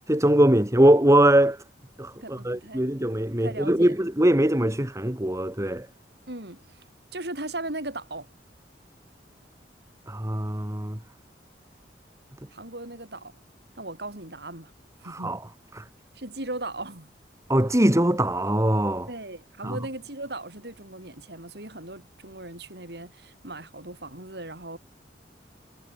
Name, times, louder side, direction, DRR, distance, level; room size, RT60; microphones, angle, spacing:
voice 1, 0.1-1.6 2.0-5.9 10.1-11.0 15.0-15.4 15.7-15.8 17.5-19.1 19.6-19.8, right 1 dB, 15° right, 2.1 m, -22 dB
voice 2, 2.2-2.9 3.4-3.9 6.3-6.8 7.1-8.3 12.5-13.3 13.8-14.7 15.0-15.4 16.1-17.1 17.8-17.9 19.1-24.8, right 2 dB, 65° right, 6.4 m, -38 dB
head